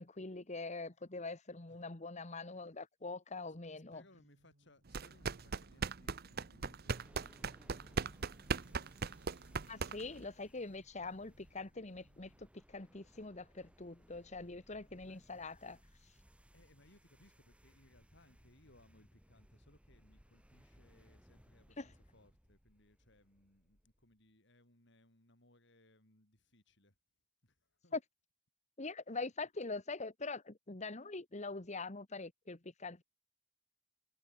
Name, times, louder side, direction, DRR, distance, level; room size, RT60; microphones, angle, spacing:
voice 1, 0.0-4.0 9.7-15.8 21.8-21.9 27.9-28.0 28.8-33.0, left 3 dB, 35° left, 1.4 m, -44 dB
voice 2, 3.7-9.6 15.0-15.2 16.5-27.0 27.4-28.0 29.2-29.3, left 1 dB, 65° left, 6.5 m, -67 dB
sound 1, 3.9-12.6, right 1 dB, 75° right, 5.1 m, -72 dB
sound 2, 4.9-10.2, right 4 dB, 50° right, 0.8 m, -39 dB
sound 3, 6.8-24.2, equal, 5° right, 5.3 m, -65 dB
head